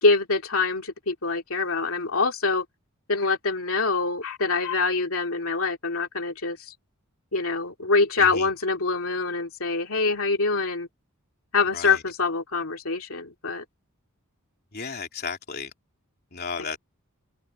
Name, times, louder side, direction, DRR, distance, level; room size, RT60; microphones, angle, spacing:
voice 1, 0.0-2.6 3.1-6.8 7.3-10.9 11.5-13.6, left 3 dB, 75° left, 2.5 m, -25 dB
voice 2, 8.2-8.5 11.7-12.0 14.7-15.7 16.3-16.8, left 5 dB, 50° left, 3.4 m, -34 dB
head